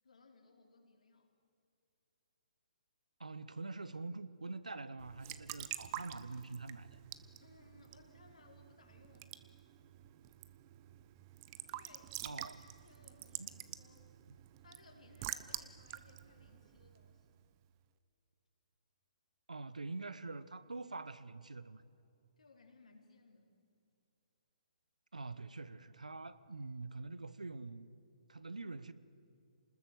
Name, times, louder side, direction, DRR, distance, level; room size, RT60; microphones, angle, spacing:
voice 1, 0.0-1.3 7.4-9.3 11.7-12.2 12.6-14.1 14.6-17.5 22.4-23.5, left 3 dB, 70° left, 4.9 m, -63 dB
voice 2, 3.2-7.0 12.2-12.6 13.4-13.5 14.3-14.4 19.5-21.8 25.1-27.9 28.3-28.9, right 3 dB, 80° right, 1.1 m, -45 dB
Raindrop / Drip / Trickle dribble, 5.0-17.5, right 14 dB, 30° right, 1.0 m, -48 dB
29.0 x 20.5 x 8.0 m
figure-of-eight pair, 130°, 4 cm